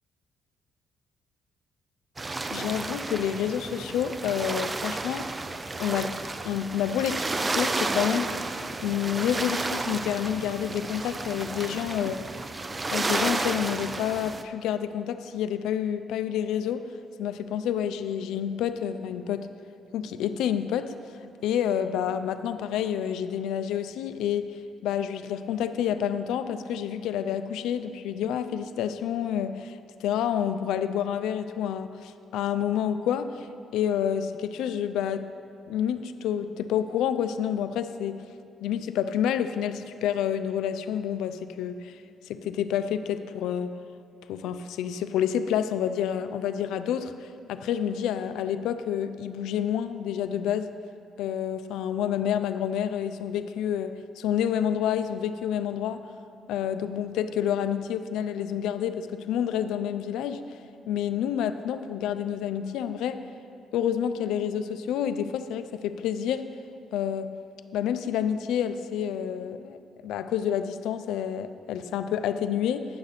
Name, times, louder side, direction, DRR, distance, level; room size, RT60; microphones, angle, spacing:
sound 1, 2.2-14.4, right 3 dB, 25° right, 0.4 m, -32 dB
voice 1, 2.5-5.3 5.8-6.1 6.4-8.3 8.8-12.2 12.9-16.8 17.2-19.5 19.9-20.9 21.4-33.5 33.7-35.3 35.7-38.2 38.6-43.7 44.3-50.7 51.2-56.0 56.5-60.4 60.9-63.2 63.7-66.4 66.9-67.3 67.7-69.8 70.0-72.9, left 9 dB, 90° left, 11 dB, 0.3 m, -29 dB
9.4 x 6.4 x 4.0 m, 2.5 s
cardioid pair, 90°, 0 cm